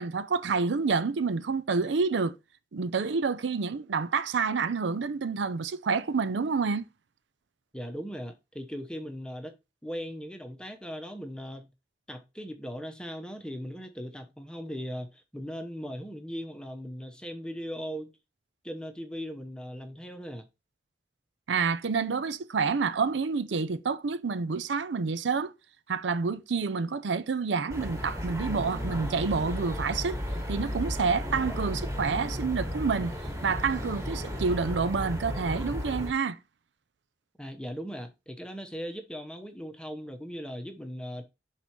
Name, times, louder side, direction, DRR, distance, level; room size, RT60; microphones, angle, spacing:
voice 1, 0.0-2.3 2.7-6.9 21.5-25.5 25.9-30.2 30.5-33.1 33.4-36.4, right 5 dB, 85° right, 0.5 m, -28 dB
voice 2, 7.7-9.5 9.8-11.7 12.1-18.1 18.6-20.4 37.4-41.2, equal, 5° left, 0.8 m, -38 dB
sound 1, 27.7-36.1, equal, 15° right, 1.5 m, -34 dB
6.2 x 4.1 x 4.4 m
head